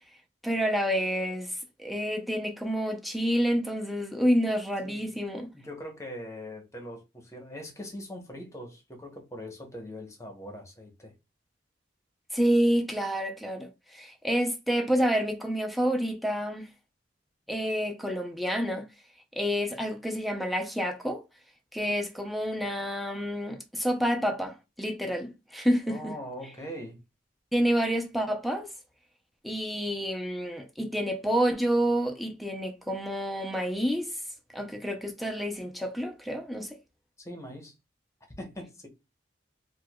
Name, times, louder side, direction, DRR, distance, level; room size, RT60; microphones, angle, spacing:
voice 1, 0.4-5.5 12.3-16.7 17.5-18.9 19.3-21.2 21.7-26.1 27.5-28.7 29.4-34.2 34.5-36.8, equal, ahead, 0.5 m, -28 dB
voice 2, 4.8-5.2 5.5-11.1 25.9-27.0 37.2-37.7 38.4-38.9, equal, 15° left, 0.9 m, -41 dB
4.6 x 2.2 x 2.2 m
head